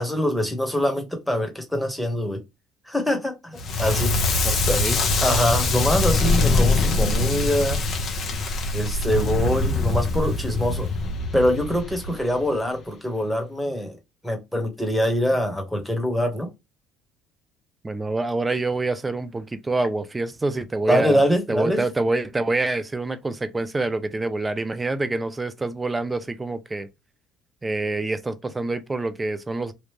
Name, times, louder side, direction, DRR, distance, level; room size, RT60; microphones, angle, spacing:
voice 1, 0.0-2.4 2.9-4.1 4.7-4.8 5.2-7.8 8.7-10.9 11.3-14.0 14.2-16.5 20.9-21.8, equal, 5° left, 1.4 m, -24 dB
Crackle, 3.6-12.5, left 3 dB, 50° left, 1.1 m, -23 dB
voice 2, 4.4-5.0 17.8-21.2 21.5-26.9 27.6-29.7, right 2 dB, 20° right, 0.6 m, -26 dB
3.2 x 2.5 x 3.3 m
supercardioid pair, 80°, 0 cm